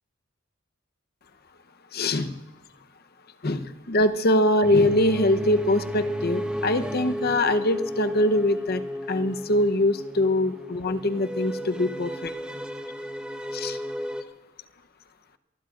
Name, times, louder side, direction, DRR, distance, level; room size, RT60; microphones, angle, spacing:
voice 1, 1.9-2.4 3.4-8.8 9.1-12.3 13.5-13.8, left 1 dB, 50° left, 9 dB, 0.8 m, -23 dB
sound 1, 4.6-14.2, equal, 5° right, 0.9 m, -33 dB
27.5 x 20.0 x 2.5 m, 1.1 s
head